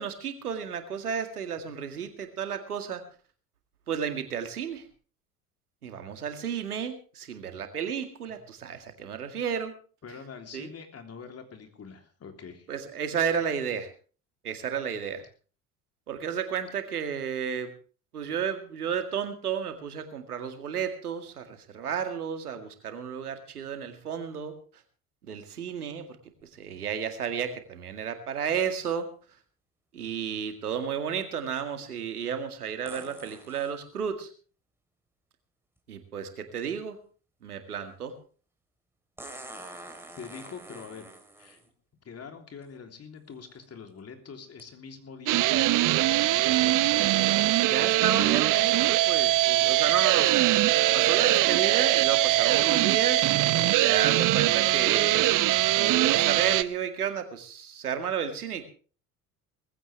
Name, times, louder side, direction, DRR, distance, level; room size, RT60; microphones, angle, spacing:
voice 1, 0.0-3.0 3.9-4.9 5.8-9.7 10.5-10.7 12.7-13.9 14.4-15.2 16.1-17.7 18.1-24.5 25.2-26.2 26.6-29.1 29.9-34.3 35.9-37.0 37.4-38.1 47.7-50.5 50.9-55.2 55.7-58.7, right 7 dB, 85° right, 7 dB, 2.2 m, -32 dB
voice 2, 10.0-12.7 13.4-13.5 40.2-41.1 41.4-41.7 42.0-47.1, left 6 dB, 35° left, 5 dB, 3.4 m, -44 dB
sound 1, 26.4-26.5 32.9-33.8 35.8-35.9 39.2-41.7 42.6-42.7 43.4-43.6 44.6-44.7, right 1 dB, 5° right, 3.9 m, -45 dB
sound 2, 45.3-56.6, right 16 dB, 45° right, 0.9 m, -22 dB
19.5 x 15.5 x 3.4 m, 0.39 s
hypercardioid pair, 70°, 44 cm